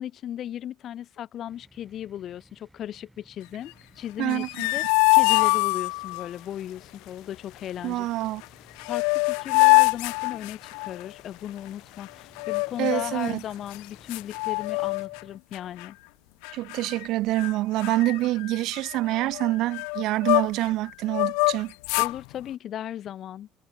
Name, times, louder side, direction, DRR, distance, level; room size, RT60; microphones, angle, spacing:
voice 1, 0.0-4.8 5.1-8.1 8.8-16.0 22.0-23.5, left 11 dB, 45° left, 1.8 m, -36 dB
sound 1, 1.5-15.4, right 1 dB, 5° right, 3.8 m, -59 dB
sound 2, 4.2-6.3 8.4-8.5 8.8-11.0 12.4-13.2 13.7-13.8 14.1-15.2 15.5-15.9 16.4-17.1 17.4-17.5 17.8-20.7 21.1-22.2, left 40 dB or more, 85° left, 0.4 m, -24 dB
voice 2, 4.2-4.7 7.8-8.4 12.8-13.4 16.5-21.7, right 17 dB, 65° right, 0.8 m, -26 dB
sound 3, 5.1-15.1, left 19 dB, 70° left, 5.6 m, -52 dB
cardioid pair, 125°, 0 cm